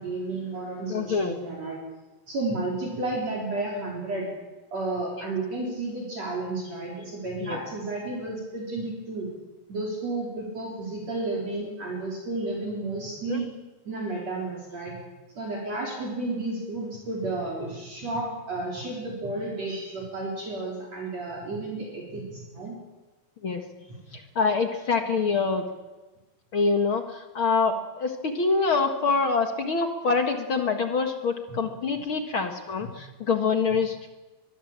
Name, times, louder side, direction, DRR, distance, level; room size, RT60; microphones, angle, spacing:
voice 1, 0.0-1.8 2.3-4.3 4.7-9.3 9.7-13.5 13.9-15.0 15.4-22.8 23.9-24.0 31.5-31.6, right 2 dB, 45° right, -2 dB, 5.2 m, -32 dB
voice 2, 0.9-1.4 7.4-7.6 13.3-13.4 23.4-23.6 24.4-25.6 26.5-34.1, left 4 dB, 50° left, 5 dB, 1.8 m, -25 dB
23.5 x 22.0 x 7.5 m, 1.1 s
omnidirectional pair, 4.1 m